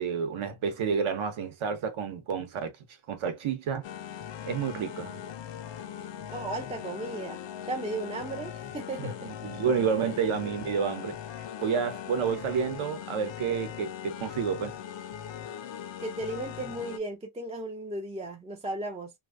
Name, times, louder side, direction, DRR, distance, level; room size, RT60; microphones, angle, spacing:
voice 1, 0.0-2.7 3.1-3.9 4.4-5.2 9.0-9.1 9.4-11.2 11.6-14.8, right 6 dB, 75° right, 0.9 m, -29 dB
sound 1, 3.8-17.0, left 9 dB, 65° left, 0.5 m, -40 dB
voice 2, 6.3-9.2 9.5-9.6 10.1-10.2 16.0-19.1, right 2 dB, 15° right, 0.3 m, -35 dB
2.8 x 2.6 x 2.4 m
wide cardioid pair, 150°, 49 cm